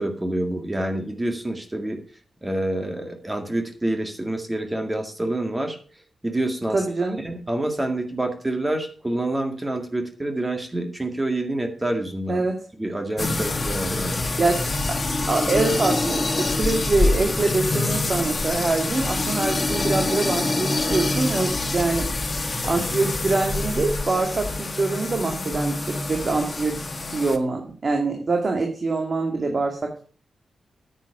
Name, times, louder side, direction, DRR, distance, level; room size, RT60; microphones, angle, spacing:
voice 1, 0.0-2.0 2.4-5.8 6.2-6.8 7.2-12.5 12.8-14.2, right 1 dB, 15° right, 5 dB, 1.9 m, -27 dB
voice 2, 6.7-7.2 12.3-12.5 14.4-15.0 15.3-22.1 22.6-26.7 27.1-30.0, right 3 dB, 45° right, 3 dB, 2.1 m, -24 dB
sound 1, 13.2-27.4, left 2 dB, 35° left, 1.3 m, -26 dB
9.5 x 9.3 x 5.0 m, 0.41 s
wide cardioid pair, 95°, 0 cm